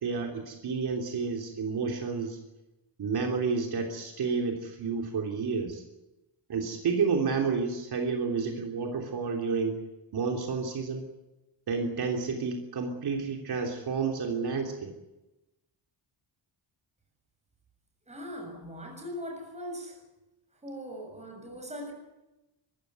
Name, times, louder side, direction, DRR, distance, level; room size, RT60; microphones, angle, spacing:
voice 1, 0.0-2.4 3.0-5.8 6.5-9.8 10.1-11.0 11.7-14.9, right 5 dB, 60° right, 2 dB, 3.3 m, -30 dB
voice 2, 18.1-20.0 20.6-21.9, equal, 15° right, 3 dB, 7.0 m, -40 dB
25.5 x 15.0 x 9.5 m, 0.98 s
wide cardioid pair, 160°, 44 cm